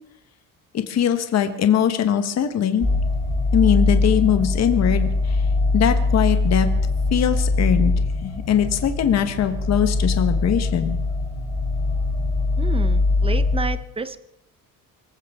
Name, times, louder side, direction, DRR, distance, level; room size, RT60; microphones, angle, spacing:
voice 1, 0.7-2.9 3.5-5.4 5.7-6.7 7.1-11.0, left 9 dB, 45° left, 8 dB, 1.2 m, -21 dB
sound 1, 2.8-13.6, left 3 dB, 5° left, 3.3 m, -22 dB
voice 2, 12.6-14.2, right 4 dB, 15° right, 13 dB, 0.6 m, -30 dB
24.0 x 15.5 x 3.6 m, 0.88 s
cardioid pair, 145°, 36 cm